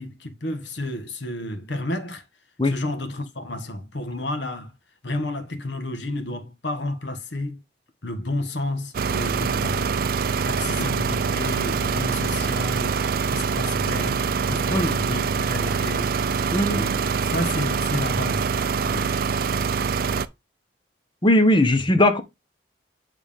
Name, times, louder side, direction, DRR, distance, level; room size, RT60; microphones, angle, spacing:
voice 1, 0.0-2.2 2.6-4.7 5.0-7.6 8.0-9.9 10.4-13.0 13.3-16.2 16.7-18.4 18.8-19.2, left 1 dB, 70° left, 1.3 m, -31 dB
sound 1, 8.9-20.3, right 5 dB, 50° right, 0.4 m, -24 dB
voice 2, 16.5-16.8 21.2-22.2, left 1 dB, 25° left, 0.9 m, -19 dB
8.9 x 3.4 x 3.5 m
head